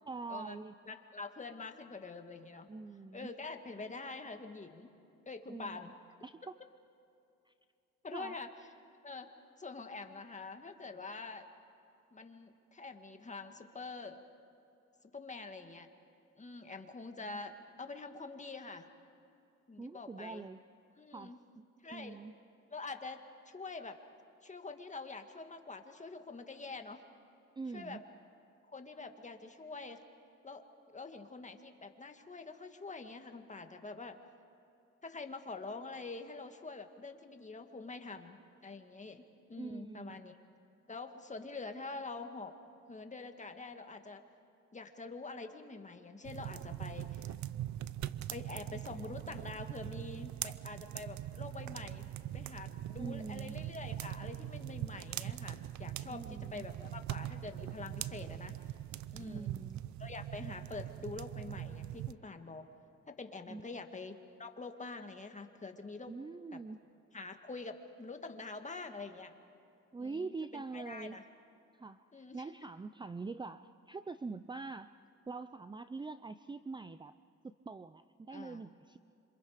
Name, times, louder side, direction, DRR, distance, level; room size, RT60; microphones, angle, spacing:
voice 1, 0.1-0.8 2.7-3.3 5.5-5.9 6.2-6.6 7.5-7.6 8.1-8.4 17.2-17.4 19.8-20.6 21.1-22.3 27.6-28.0 39.6-40.3 53.0-53.6 56.1-56.6 59.2-59.8 63.5-63.8 66.1-66.8 69.9-71.2 71.7-74.9 75.3-77.1 77.4-79.0, right 4 dB, 15° right, 12 dB, 0.5 m, -44 dB
voice 2, 0.9-2.7 3.1-4.9 5.3-5.9 8.0-8.5 9.0-9.3 9.6-11.5 12.1-14.2 15.1-15.9 16.4-18.9 19.7-20.5 21.0-21.4 21.8-22.2 22.7-24.0 24.4-27.0 27.7-28.0 28.7-30.0 30.4-34.2 35.0-39.2 39.5-40.4 40.9-42.5 42.9-44.2 44.7-47.4 48.3-52.0 52.3-58.5 59.1-59.5 60.0-62.7 63.1-66.1 67.1-69.3 70.0-71.2 72.1-72.4 78.3-78.6, left 3 dB, 25° left, 6 dB, 1.9 m, -46 dB
sound 1, 46.2-62.1, right 12 dB, 70° right, 0.7 m, -42 dB
27.0 x 26.0 x 5.1 m, 2.7 s
cardioid pair, 90°, 30 cm